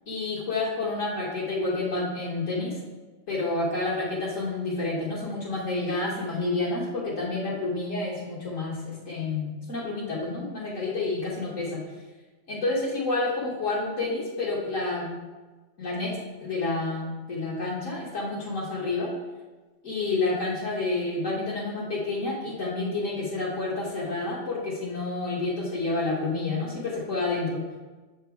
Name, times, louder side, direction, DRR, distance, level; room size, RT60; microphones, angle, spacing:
voice 1, 0.1-2.8 3.3-11.8 12.5-15.1 15.8-19.1 19.8-27.6, left 2 dB, 85° left, -6 dB, 1.8 m, -29 dB
7.0 x 4.4 x 4.6 m, 1.3 s
omnidirectional pair, 1.3 m